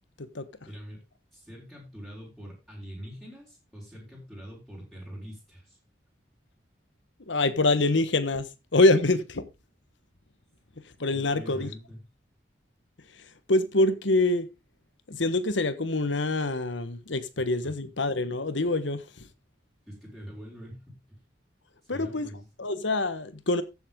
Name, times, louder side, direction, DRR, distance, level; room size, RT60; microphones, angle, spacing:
voice 1, 0.7-1.0 1.3-5.8 11.1-12.0 17.6-17.8 19.9-21.0 21.8-22.5, equal, ahead, 5.5 m, -44 dB
voice 2, 7.3-9.4 10.8-11.7 13.1-14.5 15.1-19.3 21.9-22.3 22.6-23.6, left 2 dB, 85° left, 1.3 m, -25 dB
14.5 x 7.6 x 3.8 m
head